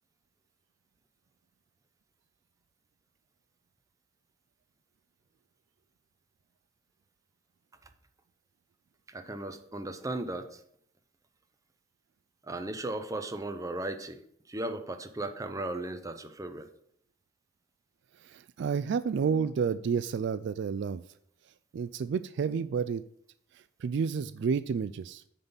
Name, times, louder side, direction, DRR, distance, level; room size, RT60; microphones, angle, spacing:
voice 1, 9.1-10.6 12.4-14.2 14.5-16.7, right 2 dB, 15° right, 7 dB, 0.7 m, -36 dB
voice 2, 18.2-21.0 21.7-23.0 23.8-25.2, right 6 dB, 60° right, 14 dB, 0.3 m, -30 dB
9.0 x 4.0 x 7.1 m, 0.68 s
head